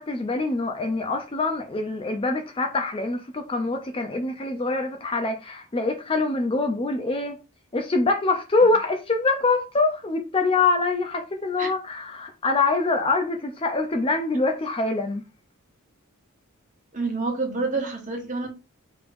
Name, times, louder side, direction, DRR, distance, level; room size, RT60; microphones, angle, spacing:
voice 1, 0.0-7.4 7.7-15.2, left 3 dB, 25° left, 0.5 m, -24 dB
voice 2, 16.9-18.5, right 3 dB, 35° right, 1.2 m, -28 dB
4.9 x 3.2 x 2.6 m
head